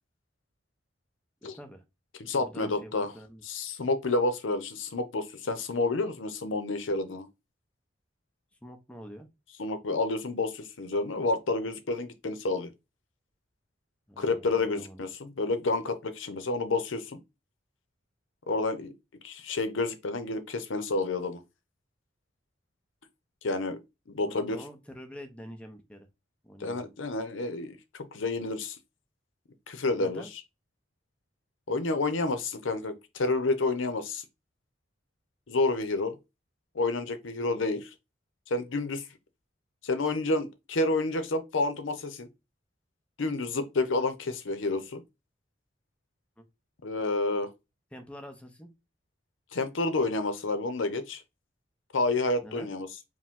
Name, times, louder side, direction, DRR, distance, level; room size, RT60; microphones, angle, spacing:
voice 1, 1.4-1.8 2.4-3.4 8.6-9.3 14.1-15.0 24.2-26.1 26.4-26.8 30.0-30.3 46.4-46.5 47.9-48.7 52.4-52.7, equal, 5° left, 0.6 m, -46 dB
voice 2, 2.2-3.1 3.4-7.3 9.6-12.7 14.2-17.2 18.5-18.9 19.2-21.4 23.4-23.8 24.1-24.6 26.6-28.8 29.7-30.2 31.7-34.2 35.5-36.2 36.7-37.9 38.5-39.0 39.8-42.3 43.2-45.0 46.8-47.5 49.5-51.2 51.9-52.9, left 2 dB, 85° left, 0.6 m, -29 dB
4.9 x 2.1 x 3.6 m
head